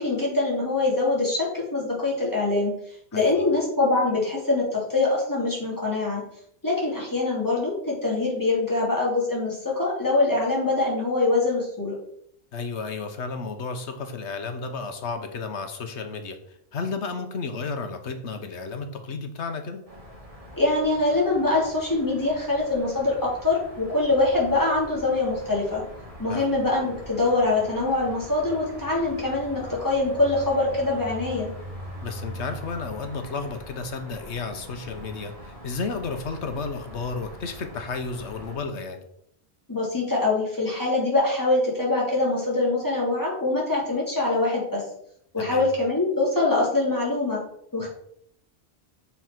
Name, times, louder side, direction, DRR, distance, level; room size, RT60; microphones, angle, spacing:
voice 1, 0.0-2.8 3.1-6.2 6.6-11.9 20.5-25.8 26.2-31.5 39.7-44.8 45.3-47.4 47.7-47.9, left 2 dB, 15° left, -5 dB, 3.0 m, -24 dB
voice 2, 3.1-3.5 12.5-19.8 26.3-26.5 32.0-39.0 45.4-45.7 47.8-47.9, left 4 dB, 90° left, 7 dB, 1.3 m, -32 dB
sound 1, 19.9-38.6, equal, 30° right, 2.2 m, -42 dB
7.1 x 4.8 x 6.0 m, 0.72 s
omnidirectional pair, 1.1 m